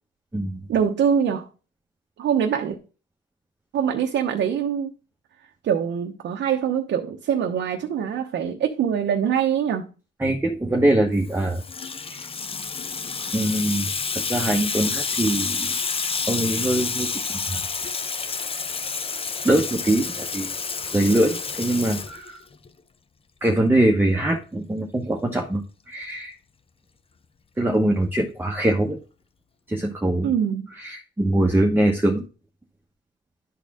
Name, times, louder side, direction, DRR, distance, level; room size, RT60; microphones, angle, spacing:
voice 1, 0.7-1.5 2.2-2.8 3.7-4.9 5.6-9.9 30.2-30.7, right 8 dB, 65° right, 0.9 m, -23 dB
voice 2, 10.2-11.6 12.1-12.3 13.3-15.8 16.3-17.2 17.5-17.6 19.4-20.5 20.9-22.4 23.4-26.3 27.6-29.0 29.7-30.3 30.8-32.2, right 1 dB, 10° right, 1.1 m, -23 dB
Water tap faucet / Sink (filling or washing), 11.2-22.7, left 5 dB, 30° left, 0.7 m, -29 dB
11.0 x 4.2 x 3.6 m
cardioid pair, 90°, 20 cm